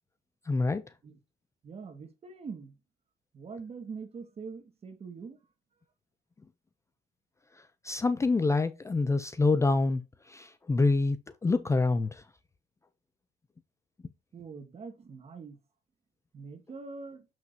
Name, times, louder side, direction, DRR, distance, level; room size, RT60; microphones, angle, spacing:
voice 1, 0.5-0.8 7.8-10.0 10.3-11.2 11.4-12.2, left 3 dB, 15° left, 0.5 m, -26 dB
voice 2, 1.6-2.7 3.3-5.4 14.3-15.6 16.3-17.3, right 5 dB, 35° right, 1.9 m, -43 dB
7.5 x 6.0 x 2.8 m
cardioid pair, 110°, 17 cm